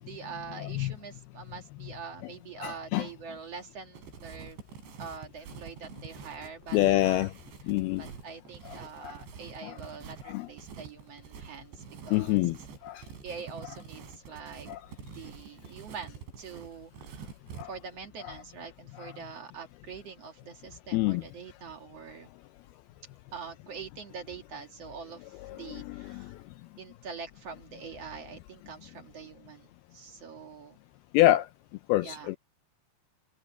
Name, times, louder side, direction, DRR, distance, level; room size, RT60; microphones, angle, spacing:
voice 1, 0.0-4.6 5.0-6.8 7.0-7.3 8.0-12.4 13.0-14.7 15.1-17.3 17.7-22.3 23.3-26.3 26.8-30.8 32.0-32.3, right 6 dB, 55° right, 1.7 m, -44 dB
voice 2, 0.6-0.9 2.6-3.1 6.7-7.3 7.7-8.0 8.7-8.8 9.0-9.1 9.6-9.7 10.3-10.5 12.1-12.6 12.8-13.0 14.7-14.8 17.6-17.7 18.2-18.3 19.0-19.1 20.9-21.2 25.4-26.2 31.1-31.5 31.9-32.4, left 16 dB, 90° left, 2.2 m, -26 dB
sound 1, 3.9-17.6, right 6 dB, 80° right, 5.9 m, -47 dB
omnidirectional pair, 5.1 m